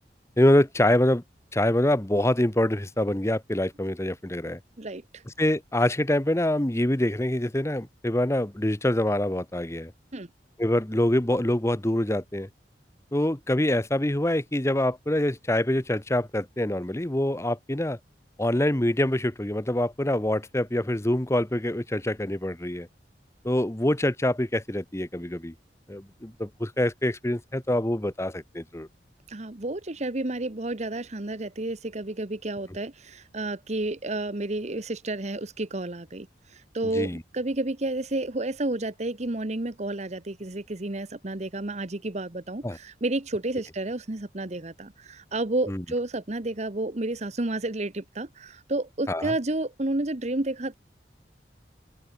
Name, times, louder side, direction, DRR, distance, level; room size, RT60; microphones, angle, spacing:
voice 1, 0.4-1.2 1.5-4.6 5.4-9.9 10.6-12.5 13.1-18.0 18.4-22.9 23.4-25.5 25.9-28.9 36.9-37.2 42.6-42.8 45.7-45.8 49.1-49.3, left 1 dB, 15° left, 1.0 m, -25 dB
voice 2, 4.8-5.2 10.1-10.3 29.3-50.7, right 2 dB, 40° right, 1.2 m, -31 dB
open air
head